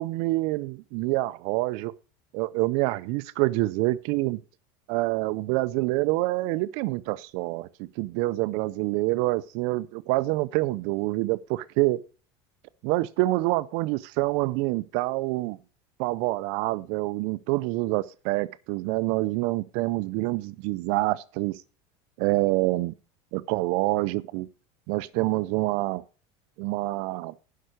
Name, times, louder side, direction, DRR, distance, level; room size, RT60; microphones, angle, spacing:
voice 1, 0.0-1.9 2.3-4.4 4.9-12.0 12.8-15.6 16.0-21.6 22.2-22.9 23.3-24.5 24.9-26.0 26.6-27.3, right 20 dB, 55° right, 0.4 m, -26 dB
11.0 x 5.7 x 6.3 m
cardioid pair, 155°, 13 cm